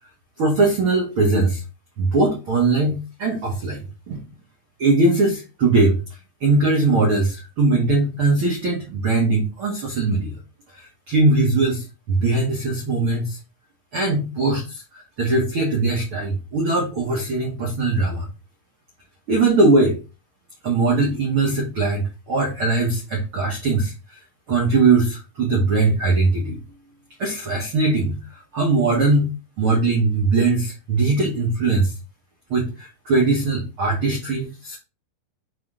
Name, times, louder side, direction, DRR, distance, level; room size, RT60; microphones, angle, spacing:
voice 1, 0.4-1.6 2.0-4.2 4.8-6.0 6.4-10.3 10.7-13.4 13.9-18.3 19.3-20.0 20.6-24.2 24.5-26.6 27.2-28.2 28.5-29.3 29.6-31.9 32.5-34.8, right 3 dB, 80° right, -1 dB, 1.2 m, -20 dB
7.5 x 3.6 x 3.8 m, 0.30 s
omnidirectional pair, 4.7 m